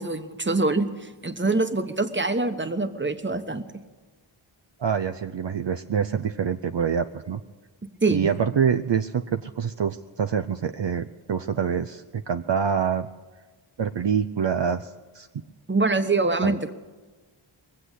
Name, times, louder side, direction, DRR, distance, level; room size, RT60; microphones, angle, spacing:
voice 1, 0.0-3.6 8.0-8.3 15.7-16.7, right 3 dB, 25° right, 9 dB, 1.1 m, -24 dB
voice 2, 4.8-7.4 8.1-13.1 13.8-15.3 16.4-16.6, right 7 dB, 60° right, 8 dB, 0.6 m, -26 dB
21.5 x 7.7 x 8.2 m, 1.3 s
wide cardioid pair, 40°, 50 cm